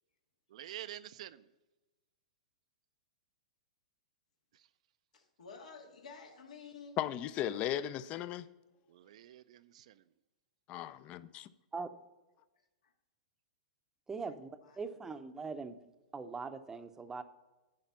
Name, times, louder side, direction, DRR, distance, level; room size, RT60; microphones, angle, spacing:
voice 1, 0.5-1.5 4.5-4.7 8.9-10.1, right 11 dB, 65° right, 0.4 m, -48 dB
voice 2, 5.1-7.0 12.8-12.9 14.2-14.3 14.6-14.8, left 5 dB, 85° left, 1.7 m, -51 dB
voice 3, 7.0-8.5 10.7-11.5, left 11 dB, 35° left, 0.4 m, -36 dB
voice 4, 14.1-15.8 16.1-17.2, right 4 dB, 10° right, 0.7 m, -41 dB
10.5 x 5.0 x 5.6 m
hypercardioid pair, 130°, 4 cm